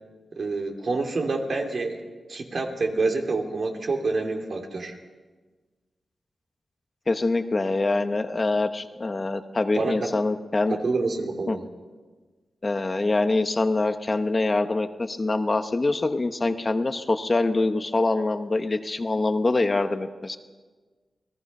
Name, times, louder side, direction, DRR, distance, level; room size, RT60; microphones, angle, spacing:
voice 1, 0.4-5.0 9.7-10.1 10.7-11.6, right 3 dB, 55° right, 3 dB, 2.9 m, -27 dB
voice 2, 7.1-10.7 11.5-11.6 12.6-20.4, left 2 dB, 30° left, 8 dB, 1.0 m, -24 dB
28.5 x 19.5 x 5.5 m, 1.4 s
wide cardioid pair, 110°, 0 cm